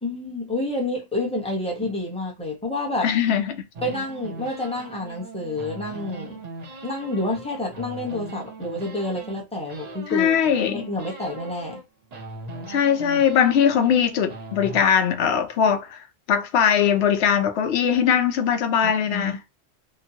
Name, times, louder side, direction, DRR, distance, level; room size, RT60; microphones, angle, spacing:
voice 1, 0.0-3.1 3.8-6.4 6.8-10.3 10.6-11.8 18.8-19.3, left 2 dB, 5° left, 0.8 m, -29 dB
voice 2, 3.0-3.6 10.1-10.9 12.7-19.4, left 8 dB, 75° left, 0.9 m, -21 dB
sound 1, 3.7-9.4 9.7-11.8 12.1-14.8, right 2 dB, 45° right, 0.6 m, -39 dB
2.9 x 2.1 x 2.7 m
omnidirectional pair, 1.1 m